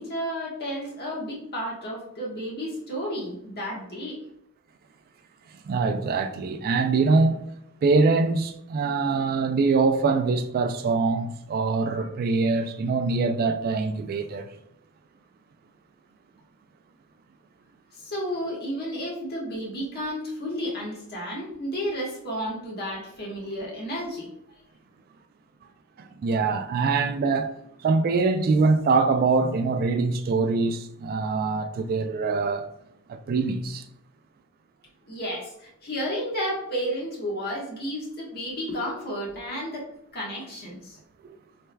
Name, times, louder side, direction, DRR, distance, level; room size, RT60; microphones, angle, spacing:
voice 1, 0.0-4.2 11.9-12.0 18.0-24.3 35.1-41.0, equal, 50° left, 1.2 m, -32 dB
voice 2, 5.7-7.4 7.8-14.5 26.0-27.5 27.8-32.7 33.1-33.9, right 4 dB, 45° right, 0.3 m, -23 dB
4.5 x 3.3 x 2.2 m
head